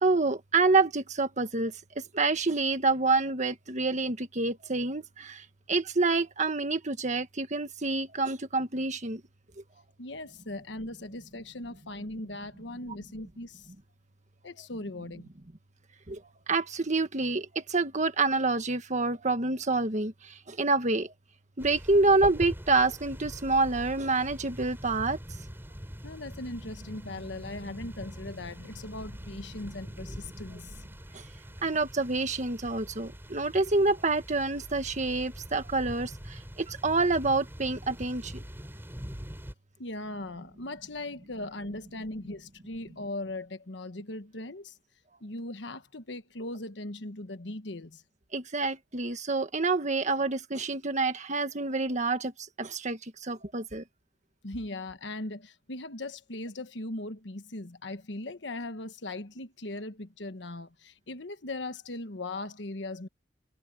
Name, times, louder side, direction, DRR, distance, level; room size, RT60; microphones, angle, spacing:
voice 1, 0.0-1.7 2.1-9.2 16.1-16.2 16.5-21.1 21.6-25.2 31.1-31.2 31.6-38.4 48.3-52.3 52.6-53.8, right 3 dB, 40° right, 1.6 m, -27 dB
voice 2, 10.0-13.7 14.4-15.3 26.0-30.7 39.8-44.8 45.2-48.0 54.4-63.1, left 2 dB, 70° left, 1.4 m, -39 dB
sound 1, 21.6-39.5, equal, 15° right, 3.9 m, -43 dB
head